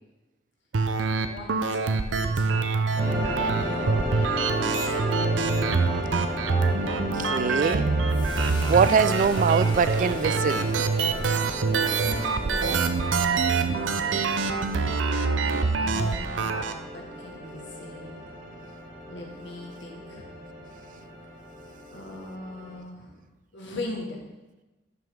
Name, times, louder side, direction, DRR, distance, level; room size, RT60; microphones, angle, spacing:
sound 1, 0.7-16.7, right 4 dB, 85° right, 0.6 m, -25 dB
voice 1, 1.1-4.0 4.5-5.1 11.7-14.2 15.3-18.2 19.1-20.3 21.9-23.2 23.5-24.2, left 2 dB, 70° left, 1 dB, 1.7 m, -40 dB
sound 2, 3.0-22.8, equal, 30° right, 3.2 m, -34 dB
voice 2, 6.8-7.9 8.7-10.7 15.5-15.8, right 6 dB, 45° right, 15 dB, 0.3 m, -24 dB
sound 3, 8.1-14.5, left 2 dB, 25° left, 1.3 m, -45 dB
11.5 x 5.8 x 3.7 m, 1.1 s
head